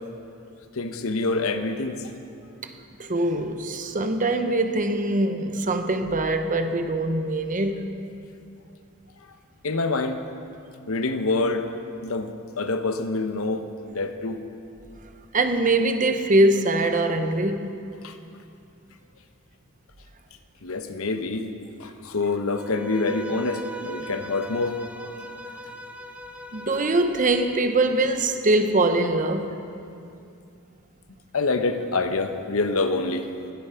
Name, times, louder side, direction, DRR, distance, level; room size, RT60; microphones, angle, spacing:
voice 1, 0.8-2.1 9.6-10.2 10.9-11.7 12.0-14.4 18.0-18.1 20.6-21.5 21.8-25.1 31.3-33.3, left 3 dB, 65° left, 0.9 m, -26 dB
voice 2, 3.0-7.9 15.3-17.7 26.5-29.6, right 2 dB, 35° right, 0.8 m, -23 dB
Bowed string instrument, 22.5-27.5, right 2 dB, 5° right, 0.6 m, -40 dB
20.5 x 8.5 x 5.7 m
head